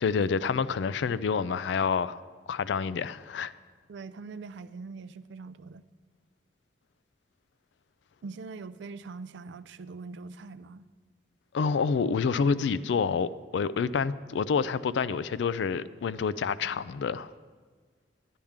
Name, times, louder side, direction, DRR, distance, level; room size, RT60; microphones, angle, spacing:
voice 1, 0.0-2.2 2.5-3.5 11.5-17.3, left 5 dB, 75° left, 0.3 m, -28 dB
voice 2, 3.9-5.8 8.2-10.9, right 4 dB, 75° right, 0.4 m, -42 dB
11.5 x 10.0 x 3.6 m
head